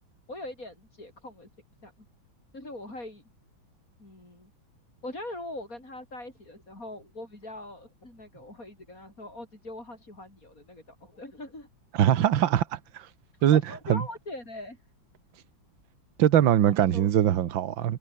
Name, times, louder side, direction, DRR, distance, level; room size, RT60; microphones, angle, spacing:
voice 1, 0.3-1.5 1.8-1.9 2.5-3.2 4.0-4.5 5.0-11.7 13.5-14.8 16.6-17.1, left 1 dB, 45° left, 8.4 m, -41 dB
voice 2, 11.9-13.1 13.4-13.6 13.9-14.0 16.2-18.0, right 11 dB, 75° right, 1.9 m, -22 dB
omnidirectional pair, 2.1 m